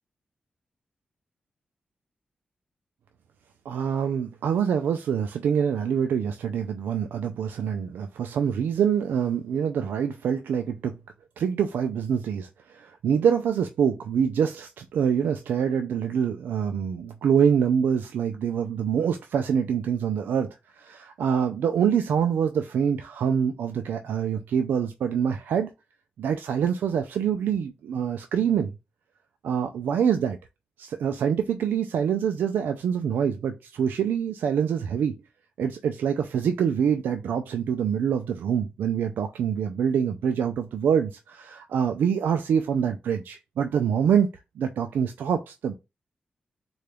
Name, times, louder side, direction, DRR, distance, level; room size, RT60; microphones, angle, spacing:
voice 1, 3.7-10.9 11.4-20.5 20.7-25.7 26.2-28.7 29.4-30.4 30.8-35.1 35.6-44.3 44.6-45.7, right 7 dB, 85° right, 0.3 m, -25 dB
3.7 x 2.3 x 3.3 m
cardioid pair, 55°, 3 cm